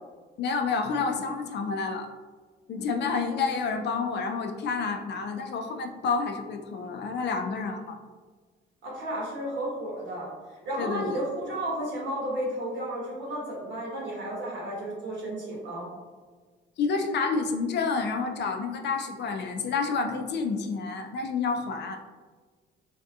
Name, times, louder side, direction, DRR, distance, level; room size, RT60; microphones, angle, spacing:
voice 1, 0.4-2.1 2.7-8.0 10.8-11.2 16.8-22.0, left 4 dB, 60° left, 5 dB, 0.4 m, -29 dB
voice 2, 8.8-10.3 10.6-15.9, right 1 dB, 65° right, -4 dB, 1.2 m, -33 dB
3.3 x 2.7 x 2.3 m, 1.5 s
cardioid pair, 90°, 20 cm